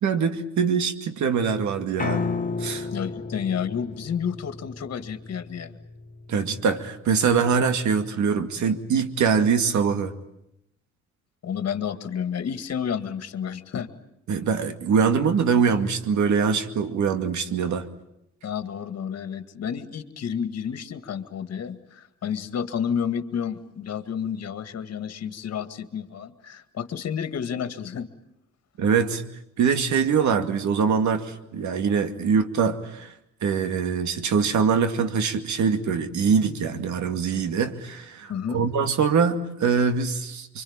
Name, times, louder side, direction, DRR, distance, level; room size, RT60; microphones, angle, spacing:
voice 1, 0.0-2.3 2.6-2.9 6.3-10.1 14.3-17.9 28.8-29.2 29.6-33.1 33.4-40.6, right 6 dB, 70° right, 9 dB, 2.3 m, -23 dB
Piano, 2.0-8.2, left 3 dB, 25° left, 1.8 m, -34 dB
voice 2, 2.9-5.8 11.4-13.9 18.4-28.1 38.3-38.6, left 8 dB, 55° left, 10 dB, 2.0 m, -30 dB
25.5 x 25.0 x 8.9 m, 0.81 s
cardioid pair, 90°, 30 cm